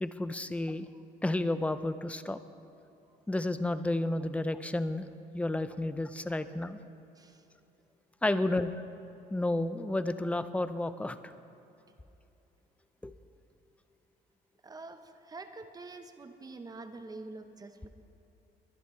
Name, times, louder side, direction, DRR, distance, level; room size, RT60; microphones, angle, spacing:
voice 1, 0.0-0.9 1.2-2.4 3.3-5.1 5.3-6.8 8.2-8.7 9.3-11.3 13.0-13.2, left 2 dB, 10° left, 12 dB, 0.5 m, -31 dB
voice 2, 8.2-8.7 14.6-17.9, right 3 dB, 20° right, 8 dB, 0.8 m, -46 dB
22.5 x 10.5 x 3.2 m, 2.8 s
cardioid pair, 110°, 17 cm